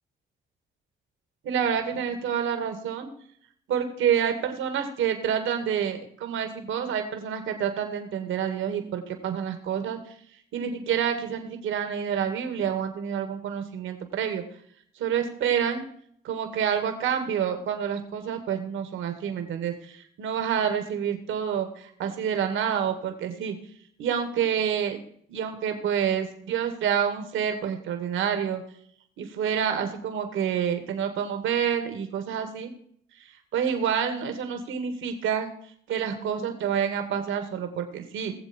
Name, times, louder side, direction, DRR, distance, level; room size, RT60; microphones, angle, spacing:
voice 1, 1.4-3.1 3.7-10.1 10.5-14.4 15.0-15.8 16.2-23.6 24.0-25.0 25.3-28.6 29.2-32.7 33.2-35.5 35.9-38.3, right 8 dB, 80° right, 6 dB, 2.2 m, -28 dB
20.0 x 7.7 x 4.6 m, 0.63 s
cardioid pair, 90°, 20 cm